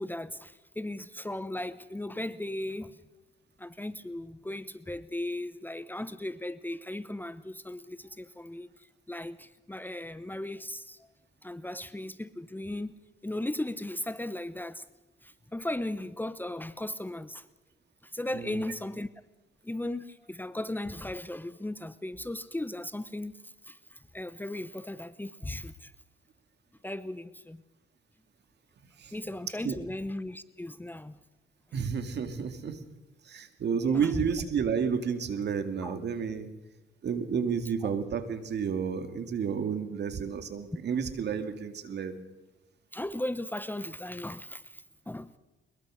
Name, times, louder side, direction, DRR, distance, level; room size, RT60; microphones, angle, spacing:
voice 1, 0.0-3.0 3.6-8.7 9.1-11.0 11.4-12.9 13.2-14.8 15.2-17.4 18.1-19.1 19.6-23.8 24.1-25.9 26.8-27.6 29.1-31.2 33.8-34.1 35.8-36.0 37.8-38.0 42.9-45.4, left 1 dB, 10° left, 14 dB, 0.9 m, -37 dB
voice 2, 31.7-32.8 33.2-36.5 37.0-42.2, right 6 dB, 60° right, 8 dB, 2.4 m, -31 dB
22.0 x 21.5 x 6.4 m, 1.0 s
cardioid pair, 90°, 20 cm